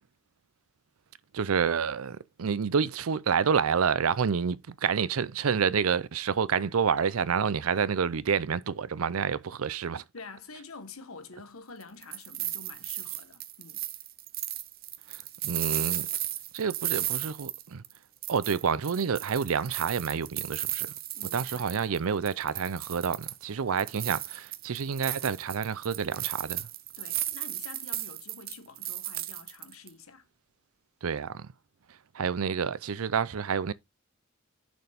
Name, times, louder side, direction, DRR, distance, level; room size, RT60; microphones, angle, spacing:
voice 1, 1.3-10.0 15.4-16.1 16.5-17.8 18.3-20.9 21.3-26.7 31.0-31.5 32.1-33.7, right 6 dB, 90° right, 0.5 m, -28 dB
voice 2, 10.1-13.8 21.1-21.7 27.0-30.3, left 4 dB, 85° left, 1.2 m, -48 dB
sound 1, 11.8-18.0 18.2-22.0 22.3-23.4 23.8-29.9, right 14 dB, 45° right, 0.6 m, -35 dB
6.8 x 6.2 x 3.5 m
head